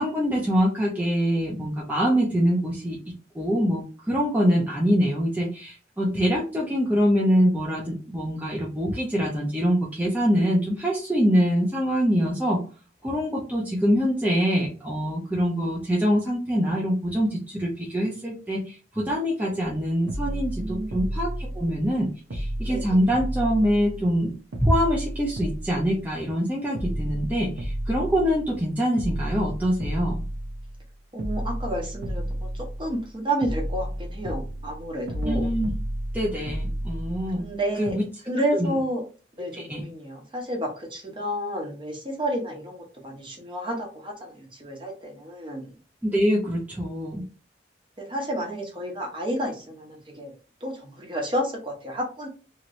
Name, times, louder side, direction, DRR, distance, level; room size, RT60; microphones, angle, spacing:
voice 1, 0.0-3.0 3.3-12.6 13.0-24.3 24.6-30.2 35.3-35.7 36.1-37.4 37.8-38.0 38.5-38.8 39.5-39.8 46.0-47.2, equal, 10° right, -4 dB, 0.6 m, -24 dB
sound 1, 19.7-19.8 20.1-22.0 22.3-24.2 24.5-26.4 26.7-28.7 29.0-30.9 31.2-33.1 33.4-37.5 37.9-38.0, equal, 75° right, 0.7 m, -32 dB
voice 2, 20.6-21.0 22.7-23.0 31.1-35.5 37.4-38.0 38.2-39.0 39.4-45.7 48.0-50.3 50.6-52.3, right 1 dB, 25° right, 0 dB, 1.0 m, -31 dB
3.0 x 2.9 x 2.6 m, 0.36 s
head